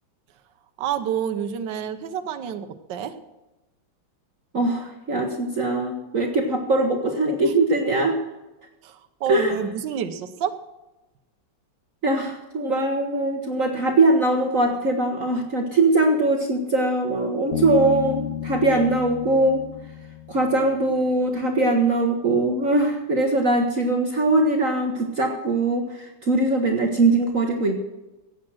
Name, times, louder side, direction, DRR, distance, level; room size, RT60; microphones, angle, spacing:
voice 1, 0.8-3.1 8.8-10.5, right 8 dB, 65° right, 8 dB, 1.6 m, -28 dB
voice 2, 4.5-8.2 9.3-9.6 12.0-19.6 20.3-27.8, right 2 dB, 45° right, 2 dB, 1.5 m, -21 dB
Bass guitar, 17.5-21.0, left 10 dB, 80° left, 0.6 m, -32 dB
15.5 x 8.7 x 6.3 m, 1.0 s
omnidirectional pair, 2.2 m